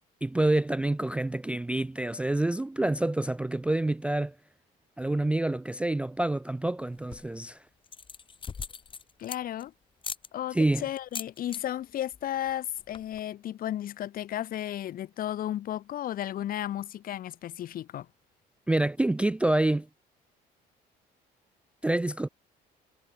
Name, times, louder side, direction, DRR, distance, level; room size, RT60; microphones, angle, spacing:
voice 1, 0.2-4.3 5.0-7.6 10.5-10.9 18.7-19.9 21.8-22.3, right 2 dB, 5° right, 0.3 m, -27 dB
sound 1, 6.9-7.4 7.8-9.6 10.0-10.3 11.0-11.6 11.9-12.2 12.5-12.6 12.8-13.2, left 6 dB, 30° left, 1.4 m, -40 dB
voice 2, 9.2-9.7 10.3-18.1, left 12 dB, 60° left, 1.4 m, -34 dB
cardioid pair, 110°, 17 cm